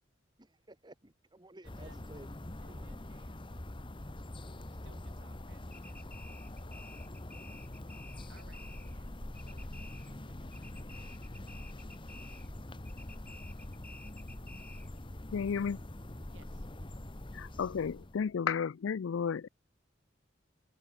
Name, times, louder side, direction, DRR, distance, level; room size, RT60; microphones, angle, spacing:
voice 1, 0.4-2.3 2.7-3.0, right 1 dB, 20° right, 1.8 m, -54 dB
sound 1, 1.6-18.3, left 1 dB, 25° left, 1.1 m, -45 dB
voice 2, 1.6-3.7 4.4-7.0 8.3-11.1 16.3-16.6, right 3 dB, 70° right, 5.9 m, -65 dB
sound 2, 5.7-9.1 9.3-10.3 10.5-12.6 12.9-15.0, left 2 dB, 10° left, 0.9 m, -54 dB
voice 3, 15.3-15.8 17.3-19.5, left 6 dB, 75° left, 0.4 m, -33 dB
open air
head